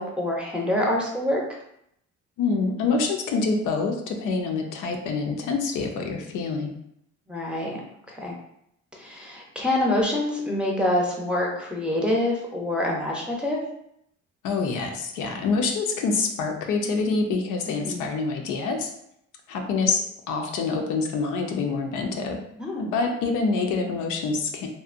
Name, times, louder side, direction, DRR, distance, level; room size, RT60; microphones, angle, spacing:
voice 1, 0.0-1.4 7.3-7.8 8.1-8.3 9.0-13.6 17.7-18.1 22.5-22.9, left 1 dB, 5° right, -3 dB, 0.6 m, -26 dB
voice 2, 2.4-6.7 14.4-18.9 19.5-22.4 22.8-24.7, left 4 dB, 90° left, 3 dB, 0.5 m, -26 dB
2.7 x 2.1 x 2.4 m, 0.74 s
cardioid pair, 90°, 30 cm